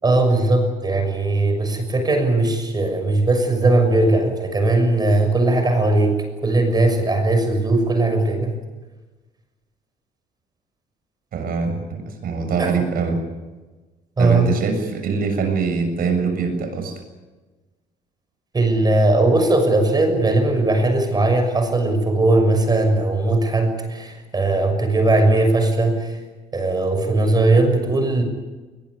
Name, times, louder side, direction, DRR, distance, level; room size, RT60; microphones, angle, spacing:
voice 1, 0.0-8.5 12.6-12.7 14.2-14.5 18.5-26.2 26.5-28.2, right 2 dB, 25° right, 6 dB, 6.4 m, -19 dB
voice 2, 11.3-13.2 14.2-17.0, right 5 dB, 60° right, 6 dB, 7.1 m, -23 dB
21.5 x 21.0 x 9.8 m, 1.2 s
cardioid pair, 110°, 17 cm